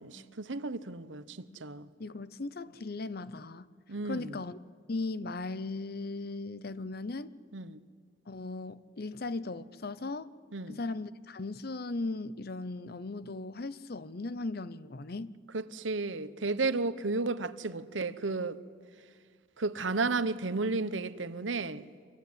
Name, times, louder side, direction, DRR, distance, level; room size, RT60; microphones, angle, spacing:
voice 1, 0.0-1.9 3.9-4.4 7.5-7.8 10.5-10.8 15.5-18.6 19.6-21.8, right 3 dB, 80° right, 1.0 m, -33 dB
voice 2, 2.0-3.7 4.0-4.6 4.9-7.3 8.3-10.3 10.7-15.3, left 3 dB, 55° left, 0.8 m, -37 dB
26.5 x 23.0 x 9.6 m
head